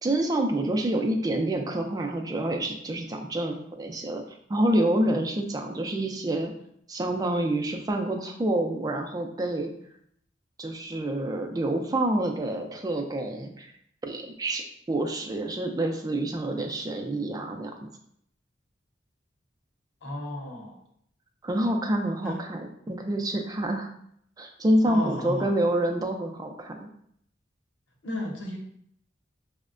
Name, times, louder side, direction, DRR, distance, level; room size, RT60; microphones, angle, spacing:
voice 1, 0.0-4.2 4.5-6.5 6.9-9.7 10.6-13.7 14.0-17.9 21.4-23.9 24.4-26.9, right 1 dB, 20° right, 2 dB, 0.4 m, -27 dB
voice 2, 20.0-20.8 22.2-22.4 24.9-25.5 28.0-28.6, left 1 dB, 90° left, 0 dB, 0.8 m, -33 dB
5.2 x 2.1 x 2.4 m, 0.69 s
head